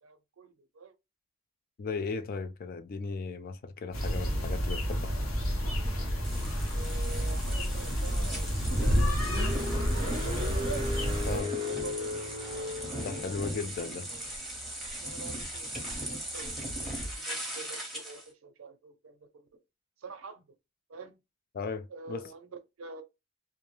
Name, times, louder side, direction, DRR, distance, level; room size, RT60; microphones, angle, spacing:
voice 1, 0.0-0.9 6.7-10.8 11.2-12.1 13.8-14.3 15.0-19.6 20.0-20.5 20.9-21.1 21.9-22.5 22.8-23.0, right 4 dB, 75° right, 0.5 m, -47 dB
voice 2, 1.8-5.1 11.3-11.5 13.0-14.1 21.5-22.2, left 4 dB, 45° left, 0.4 m, -36 dB
sound 1, 3.9-11.4, equal, 75° left, 0.8 m, -30 dB
sound 2, 6.2-18.3, right 1 dB, ahead, 0.8 m, -39 dB
Car, 8.2-13.6, left 2 dB, 25° right, 0.5 m, -36 dB
2.3 x 2.1 x 3.0 m
head